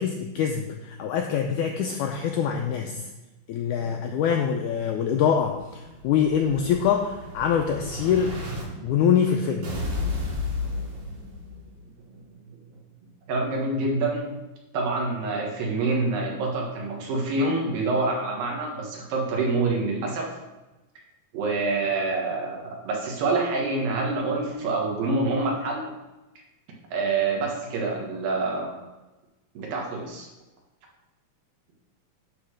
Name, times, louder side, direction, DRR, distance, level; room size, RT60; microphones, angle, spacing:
voice 1, 0.0-3.1 3.5-8.4 8.8-9.7, left 8 dB, 90° left, 3 dB, 1.7 m, -24 dB
voice 2, 3.8-4.2 8.7-8.8 10.6-11.5 12.1-12.2 13.3-14.3 14.7-20.3 21.3-25.9 26.9-28.8 29.5-30.3, right 3 dB, 75° right, -1 dB, 3.2 m, -27 dB
Explosion, 5.3-8.6 9.6-11.6, left 3 dB, 50° right, 2.6 m, -33 dB
9.4 x 3.9 x 6.5 m, 1.1 s
omnidirectional pair, 4.1 m